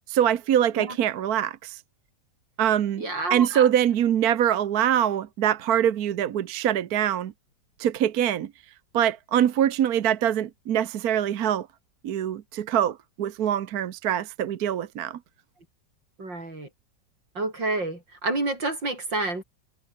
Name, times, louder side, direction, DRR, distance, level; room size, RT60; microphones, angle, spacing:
voice 1, 0.1-1.8 2.6-3.0 3.3-7.3 7.8-8.5 8.9-11.7 12.0-15.2, right 10 dB, 60° right, 1.3 m, -24 dB
voice 2, 3.0-3.7 16.2-16.7 17.3-19.4, right 2 dB, 80° right, 7.8 m, -29 dB
omnidirectional pair, 2.0 m